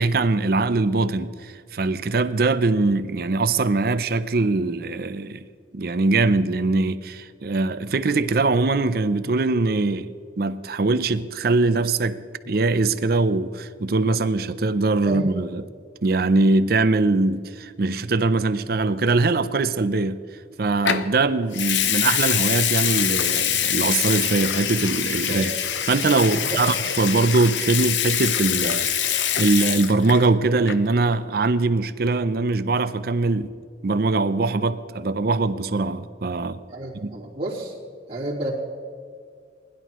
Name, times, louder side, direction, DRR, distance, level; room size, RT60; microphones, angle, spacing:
voice 1, 0.0-5.5 5.7-10.1 10.4-12.2 12.5-15.7 16.0-20.2 20.6-25.5 25.9-33.5 33.8-36.6 37.0-37.1, right 3 dB, 55° right, 0.5 m, -22 dB
Water tap faucet / Sink (filling or washing) / Liquid, 20.9-21.1 21.5-30.3 30.6-30.9, left 9 dB, 85° left, 0.7 m, -24 dB
voice 2, 36.7-37.7 38.1-38.5, right 2 dB, 35° right, 3.6 m, -30 dB
20.5 x 11.0 x 3.1 m
head